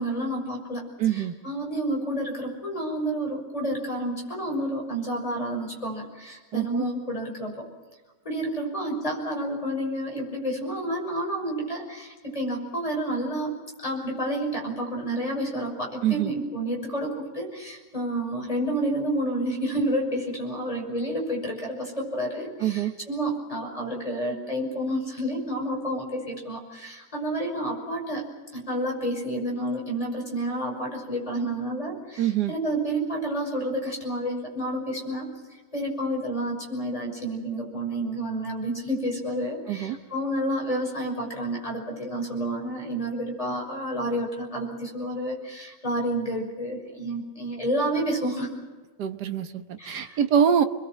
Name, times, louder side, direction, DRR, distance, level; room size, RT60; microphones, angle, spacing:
voice 1, 0.0-7.6 8.2-13.5 13.8-28.2 28.5-35.3 35.7-48.5 49.8-50.2, right 1 dB, 15° left, -1 dB, 6.0 m, -30 dB
voice 2, 1.0-1.3 6.5-6.9 16.0-16.3 22.6-22.9 32.2-32.5 39.7-40.0 49.0-50.6, right 9 dB, 55° right, 8 dB, 1.5 m, -24 dB
27.0 x 22.0 x 7.6 m, 1.2 s
omnidirectional pair, 2.4 m